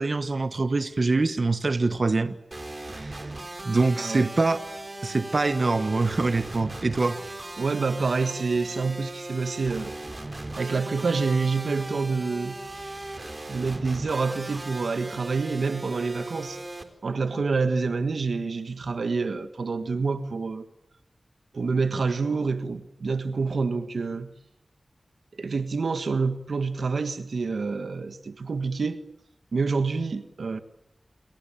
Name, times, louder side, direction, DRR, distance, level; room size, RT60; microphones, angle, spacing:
voice 1, 0.0-2.3 2.9-3.3 3.6-4.6 5.0-7.2, right 3 dB, 55° right, 1.4 m, -24 dB
sound 1, 2.5-16.8, right 2 dB, 35° right, 4.2 m, -38 dB
voice 2, 4.0-4.3 7.6-9.9 10.6-12.6 13.5-16.6 17.0-20.7 21.5-24.3 25.4-29.0 29.5-30.6, right 4 dB, 80° right, 1.6 m, -27 dB
28.0 x 24.0 x 8.7 m
wide cardioid pair, 55°, 0 cm